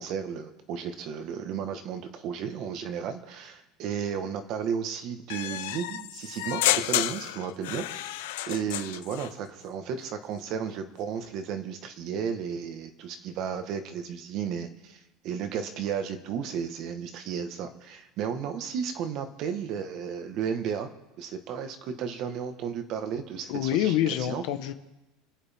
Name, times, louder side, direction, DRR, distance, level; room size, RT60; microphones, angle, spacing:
voice 1, 0.0-20.9 21.2-24.4, right 7 dB, 45° right, 7 dB, 1.5 m, -34 dB
sound 1, 5.3-9.3, left 15 dB, 80° left, 0.6 m, -30 dB
voice 2, 23.5-24.7, left 12 dB, 60° left, 8 dB, 1.2 m, -26 dB
29.0 x 9.7 x 3.6 m, 0.98 s
cardioid pair, 160°, 0 cm